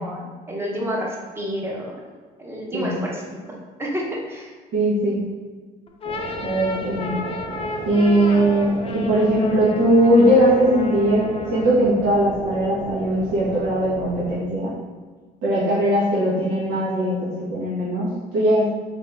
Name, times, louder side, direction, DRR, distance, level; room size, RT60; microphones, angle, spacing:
voice 1, 0.0-2.0 2.4-3.4 3.8-4.5, equal, 15° right, -2 dB, 0.9 m, -29 dB
voice 2, 4.7-5.2 6.4-7.3 7.8-14.7 15.4-18.7, right 1 dB, 90° right, -7 dB, 1.2 m, -20 dB
sound 1, 5.9-11.9, left 3 dB, 35° left, 0.5 m, -33 dB
sound 2, 6.0-14.4, right 2 dB, 45° right, 0.7 m, -35 dB
3.9 x 2.7 x 3.4 m, 1.4 s
cardioid pair, 110°, 17 cm